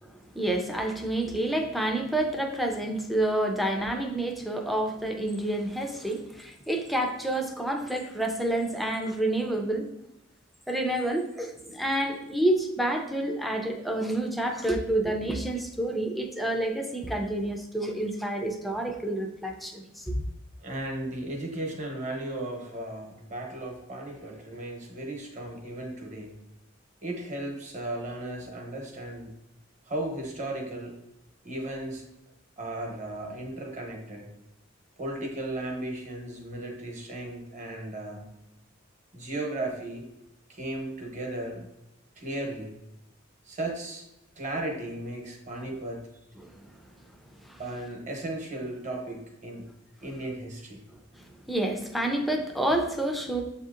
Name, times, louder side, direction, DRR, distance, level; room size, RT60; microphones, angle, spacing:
voice 1, 0.3-9.9 10.7-20.2 46.4-46.5 47.4-47.6 51.2-53.4, right 1 dB, ahead, 2 dB, 0.4 m, -29 dB
voice 2, 20.6-26.4 27.0-29.3 29.9-30.9 31.4-32.0 32.6-34.3 35.0-38.2 39.1-40.0 40.5-41.7 42.2-42.7 43.5-44.0 44.4-46.0 47.6-49.6 50.0-50.8, right 1 dB, 40° right, 1 dB, 0.9 m, -35 dB
6.9 x 2.7 x 2.4 m, 0.87 s
head